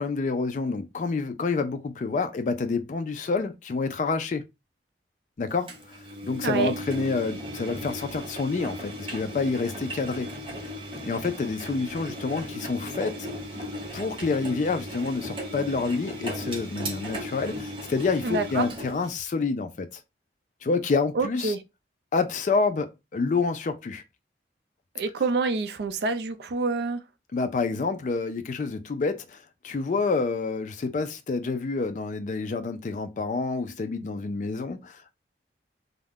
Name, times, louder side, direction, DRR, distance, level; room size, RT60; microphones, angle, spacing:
voice 1, 0.0-4.4 5.4-6.0 6.2-10.3 11.0-13.3 13.9-20.0 20.6-21.5 22.1-24.0 27.3-35.1, left 4 dB, 40° left, 0.3 m, -28 dB
Engine, 5.7-19.1, equal, 30° right, 0.7 m, -37 dB
voice 2, 6.4-6.7 18.2-18.7 21.1-21.6 24.9-27.0, right 3 dB, 65° right, 0.4 m, -27 dB
2.4 x 2.1 x 3.3 m
head